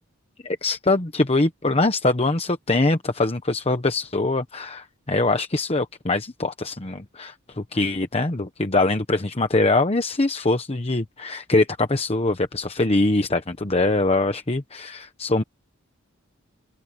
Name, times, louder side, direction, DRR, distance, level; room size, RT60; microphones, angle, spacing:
voice 1, 0.4-15.4, left 2 dB, 30° left, 1.0 m, -23 dB
open air
head